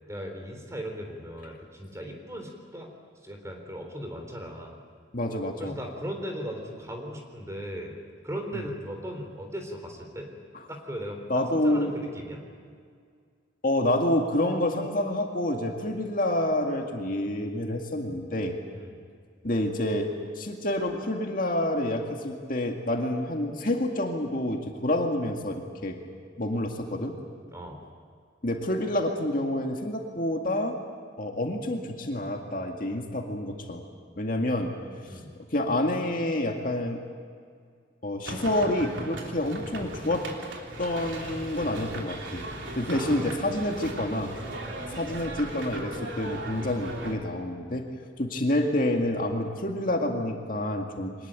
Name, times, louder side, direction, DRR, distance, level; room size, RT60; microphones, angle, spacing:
voice 1, 0.1-2.9 3.2-4.8 5.6-7.9 8.2-10.3 10.7-11.2 11.5-12.4 18.7-19.0 27.5-27.8 35.1-35.3 42.9-43.6 44.7-44.9, equal, 15° right, 3 dB, 3.8 m, -38 dB
voice 2, 5.1-5.8 8.5-8.7 11.3-11.9 13.6-18.6 19.4-26.0 26.4-27.2 28.4-30.8 31.2-33.8 34.2-34.8 35.5-37.0 38.0-40.3 40.8-42.4 42.8-44.3 44.9-47.9 48.2-51.1, left 1 dB, 45° left, 2 dB, 2.1 m, -28 dB
sound 1, 38.3-47.1, right 1 dB, 75° right, 3.5 m, -38 dB
24.5 x 20.0 x 9.1 m, 2.1 s
head